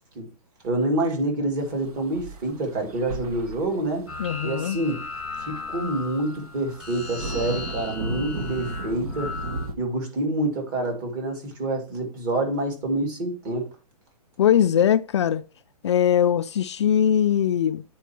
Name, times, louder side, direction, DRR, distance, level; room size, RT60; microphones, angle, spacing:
voice 1, 0.6-4.1 4.4-5.1 5.4-9.3 9.8-13.7, right 2 dB, 30° right, 2.2 m, -27 dB
sound 1, 1.6-9.7, right 2 dB, 65° right, 1.3 m, -36 dB
sound 2, 4.1-9.7, left 4 dB, 5° right, 1.1 m, -37 dB
voice 2, 4.2-4.8 14.4-15.4 15.8-17.8, left 9 dB, 45° left, 0.4 m, -21 dB
9.3 x 4.5 x 4.3 m
hypercardioid pair, 160°, 21 cm